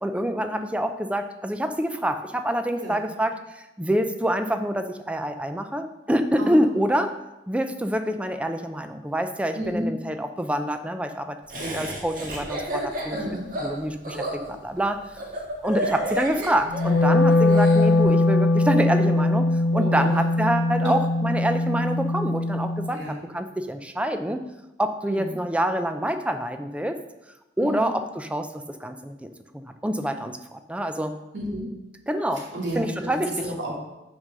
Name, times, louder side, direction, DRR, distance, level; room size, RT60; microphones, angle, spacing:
voice 1, 0.0-7.1 7.5-11.4 11.7-13.2 13.6-15.0 15.6-19.5 19.7-24.4 24.8-27.0 27.6-29.3 29.5-31.2 32.1-32.5 32.7-33.5, equal, 5° right, 7 dB, 0.5 m, -26 dB
voice 2, 9.5-9.9 11.6-11.8 13.1-13.5 19.7-20.1 20.8-20.9 22.9-23.2 25.1-25.3 27.6-27.9 31.3-31.7 32.5-33.9, right 1 dB, 85° right, -3 dB, 2.4 m, -31 dB
Laughter, 11.5-17.9, right 1 dB, 50° right, 1.7 m, -31 dB
Wind instrument woodwind instrument, 16.7-22.9, left 2 dB, 70° left, 0.5 m, -21 dB
6.3 x 5.3 x 6.2 m, 0.99 s
head